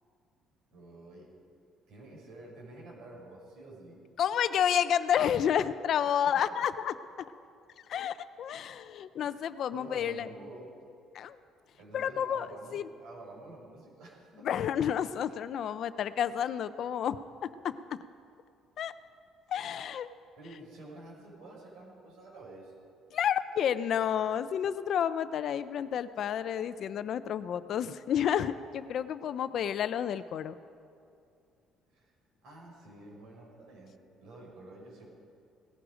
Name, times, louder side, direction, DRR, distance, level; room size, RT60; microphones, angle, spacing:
voice 1, 0.7-1.3 1.9-4.0 6.2-6.4 9.2-10.7 11.8-14.6 20.4-22.7 31.9-32.1 32.4-35.1, right 2 dB, 70° right, -2 dB, 5.3 m, -49 dB
voice 2, 4.2-6.9 7.9-10.3 11.1-11.4 11.9-12.5 12.7-12.9 14.4-18.0 18.8-18.9 19.5-20.1 23.1-30.5, left 9 dB, 50° left, 13 dB, 0.5 m, -30 dB
18.5 x 15.0 x 5.0 m, 2.4 s
cardioid pair, 160°, 0 cm